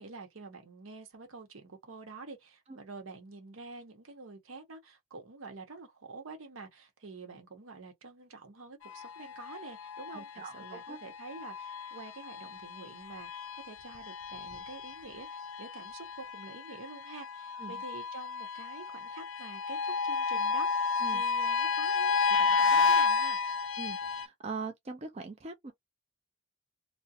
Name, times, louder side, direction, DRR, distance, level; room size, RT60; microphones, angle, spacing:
voice 1, 0.0-23.4, right 3 dB, 80° right, 0.8 m, -48 dB
sound 1, 8.8-24.3, left 5 dB, 75° left, 0.4 m, -32 dB
voice 2, 10.1-11.0 17.6-17.8 21.0-21.2 23.8-25.7, right 4 dB, 30° right, 0.4 m, -42 dB
2.4 x 2.1 x 2.7 m
head